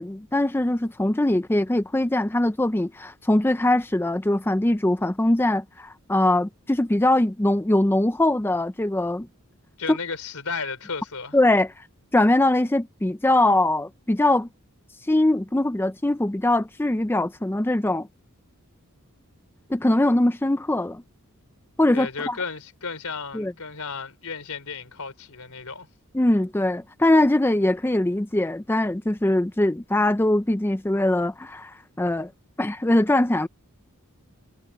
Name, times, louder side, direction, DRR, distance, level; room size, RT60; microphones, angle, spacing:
voice 1, 0.0-9.3 9.9-10.0 11.3-11.7 12.1-14.5 15.1-18.1 19.7-21.0 21.8-22.4 23.3-23.5 26.1-32.3 32.6-33.5, left 1 dB, 10° left, 0.4 m, -22 dB
voice 2, 9.8-11.4 21.9-25.9, left 5 dB, 80° left, 3.6 m, -33 dB
head